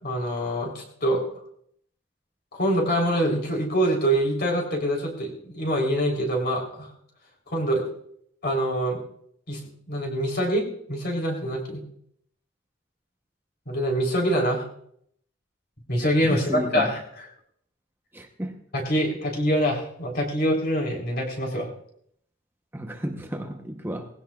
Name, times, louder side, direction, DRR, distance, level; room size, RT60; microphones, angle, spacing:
voice 1, 0.0-1.2 2.5-6.9 7.5-7.9 8.4-9.0 9.5-9.6 9.9-11.8 13.7-14.6 15.9-17.3 18.7-21.7, equal, 55° left, 0 dB, 3.6 m, -25 dB
voice 2, 16.2-16.9 18.1-18.5 22.7-24.1, equal, 10° right, 3 dB, 0.8 m, -32 dB
19.5 x 16.0 x 2.3 m, 0.68 s
head